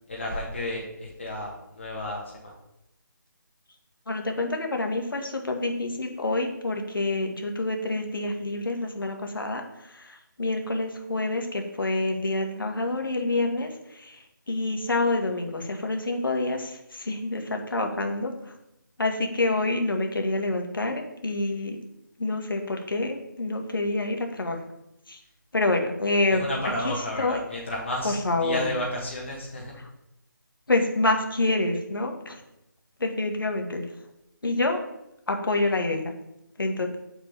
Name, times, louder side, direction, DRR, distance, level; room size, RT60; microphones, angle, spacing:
voice 1, 0.1-2.5 26.3-29.7, left 1 dB, 35° left, -4 dB, 1.7 m, -32 dB
voice 2, 4.1-18.5 19.0-21.8 22.2-24.6 25.1-25.2 25.5-26.4 26.8-27.4 28.0-28.7 29.8-29.9 30.7-32.4 33.0-33.9 34.4-34.8 35.3-36.1 36.6-37.0, left 2 dB, 90° left, 3 dB, 1.9 m, -27 dB
6.9 x 4.9 x 7.1 m, 0.85 s
figure-of-eight pair, 180°, 11 cm